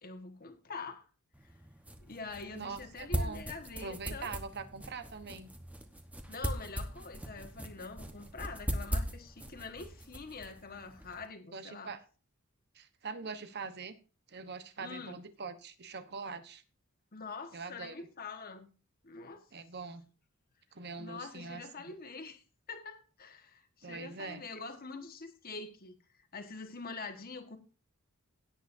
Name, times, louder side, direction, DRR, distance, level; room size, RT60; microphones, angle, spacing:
voice 1, 0.0-1.1 2.0-4.3 6.3-11.9 14.8-15.2 17.1-18.7 19.0-19.5 21.0-27.6, left 4 dB, 45° left, 1.5 m, -45 dB
sound 1, 1.3-11.3, equal, 5° right, 1.1 m, -40 dB
voice 2, 2.5-3.4 3.8-5.5 11.5-12.0 12.7-14.0 14.3-16.6 17.5-18.1 19.5-20.0 20.7-21.9 23.8-24.4, right 4 dB, 50° right, 1.0 m, -43 dB
17.0 x 8.5 x 2.7 m
head